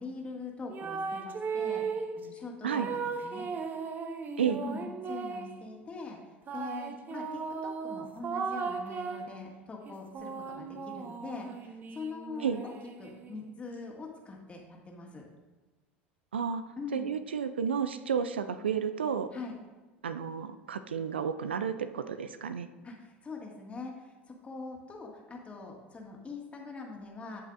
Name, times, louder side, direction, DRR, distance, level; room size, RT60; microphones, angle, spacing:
voice 1, 0.0-1.9 2.1-3.4 4.6-6.2 6.5-12.7 13.0-15.2 16.8-17.1 19.3-19.5 22.8-24.1 24.4-27.4, left 3 dB, 20° left, -1 dB, 1.9 m, -43 dB
sound 1, 0.7-2.2 2.7-5.6 6.5-9.3 9.9-13.5, right 5 dB, 30° right, 0.8 m, -37 dB
voice 2, 16.3-16.6 16.9-19.3 20.0-22.7, right 7 dB, 75° right, 12 dB, 0.4 m, -31 dB
16.0 x 5.5 x 2.5 m, 1.3 s
figure-of-eight pair, 75°, 6 cm